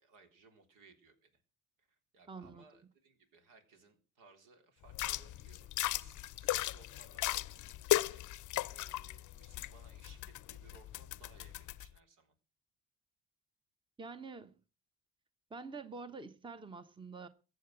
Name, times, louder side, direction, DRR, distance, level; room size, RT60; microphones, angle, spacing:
voice 1, 0.0-1.4 1.8-12.3, right 4 dB, 70° right, 3.7 m, -63 dB
voice 2, 2.3-2.6 14.0-14.5 15.5-17.3, right 4 dB, 15° right, 1.0 m, -46 dB
sound 1, 4.9-11.9, left 15 dB, 65° left, 0.6 m, -37 dB
15.0 x 7.9 x 8.0 m
cardioid pair, 90°, 33 cm